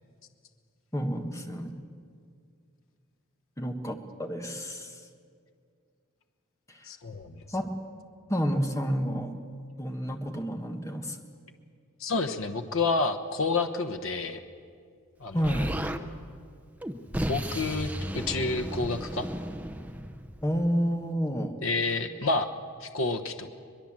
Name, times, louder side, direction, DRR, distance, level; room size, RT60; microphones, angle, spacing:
voice 1, 0.9-1.7 3.6-5.1 6.7-6.9 7.5-7.7 8.3-9.3 9.8-11.2 15.3-15.7 20.4-21.6, equal, 15° left, 4 dB, 1.5 m, -30 dB
voice 2, 6.8-7.4 12.0-14.4 15.2-15.5 17.3-19.3 21.6-22.5 22.8-23.5, left 3 dB, 75° left, 5 dB, 1.1 m, -29 dB
Explosion, 15.4-16.0 16.8-20.7, equal, 5° right, 0.7 m, -34 dB
22.5 x 21.5 x 7.5 m, 2.2 s
head